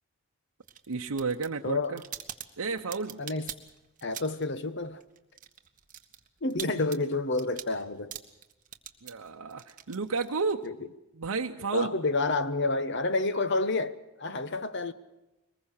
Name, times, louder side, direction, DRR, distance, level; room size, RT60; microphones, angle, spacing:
sound 1, 0.6-4.6 4.8-10.7, right 10 dB, 35° right, 1.4 m, -44 dB
voice 1, 0.9-2.0 2.6-3.2 9.0-10.7 11.1-11.9, right 4 dB, 85° right, 0.8 m, -31 dB
voice 2, 1.6-2.0 3.2-3.5 4.0-5.0 6.4-8.2 10.6-10.7 11.7-14.9, left 3 dB, 50° left, 1.0 m, -29 dB
23.0 x 20.5 x 6.5 m
head